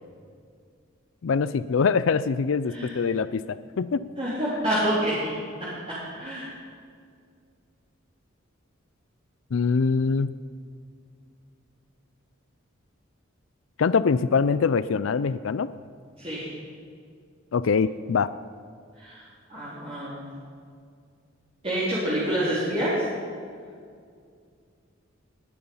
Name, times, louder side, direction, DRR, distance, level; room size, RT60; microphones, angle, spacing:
voice 1, 1.2-4.0 9.5-10.3 13.8-15.7 17.5-18.3, left 5 dB, 75° left, 15 dB, 0.4 m, -23 dB
voice 2, 4.2-5.2 6.1-6.5 16.2-16.5 19.0-19.2 19.5-20.2 21.6-23.1, right 1 dB, 30° right, -10 dB, 3.7 m, -27 dB
19.5 x 11.0 x 5.6 m, 2.2 s
head